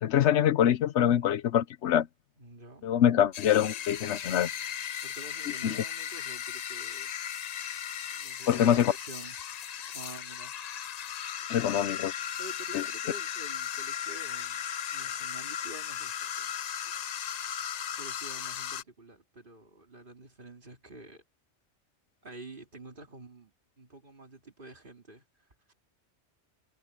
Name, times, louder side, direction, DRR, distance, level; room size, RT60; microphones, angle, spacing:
voice 1, 0.0-2.1 2.8-4.5 5.6-5.8 8.5-8.9 11.5-12.2 12.7-12.8, left 10 dB, 80° left, 1.0 m, -24 dB
voice 2, 2.4-2.9 5.0-7.1 8.1-9.4 9.9-10.5 12.4-14.6 14.9-16.6 18.0-21.2 22.2-25.7, right 2 dB, 50° right, 3.0 m, -48 dB
sound 1, 3.3-18.8, left 9 dB, 60° left, 0.4 m, -37 dB
sound 2, 3.8-9.6, right 1 dB, 80° right, 7.2 m, -57 dB
omnidirectional pair, 1.2 m